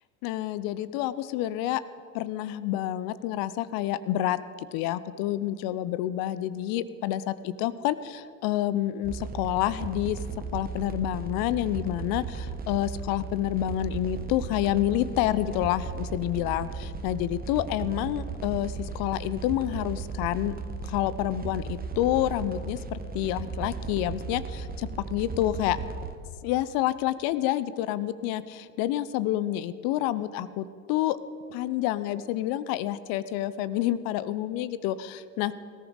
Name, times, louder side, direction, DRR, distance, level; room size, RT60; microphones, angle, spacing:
voice 1, 0.2-1.8 2.1-10.2 10.5-20.5 20.8-25.8 26.4-31.2 31.5-35.5, left 13 dB, 55° left, 16 dB, 0.8 m, -28 dB
sound 1, 9.0-26.2, right 4 dB, 20° right, 1.3 m, -36 dB
19.5 x 14.0 x 4.0 m, 2.4 s
hypercardioid pair, 75°, 42 cm